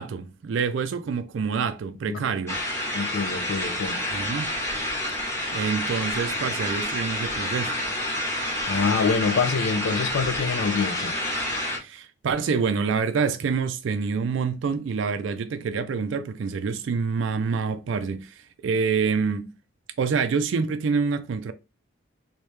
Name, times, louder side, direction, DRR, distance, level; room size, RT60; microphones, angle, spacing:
voice 1, 0.0-2.6 4.1-4.5 5.5-7.7 11.8-19.5 20.0-21.5, right 5 dB, 70° right, 0.3 m, -27 dB
sound 1, 2.5-11.8, left 1 dB, 15° left, 1.0 m, -29 dB
voice 2, 2.9-4.0 8.7-11.2, left 5 dB, 75° left, 0.4 m, -25 dB
3.1 x 2.7 x 3.2 m
head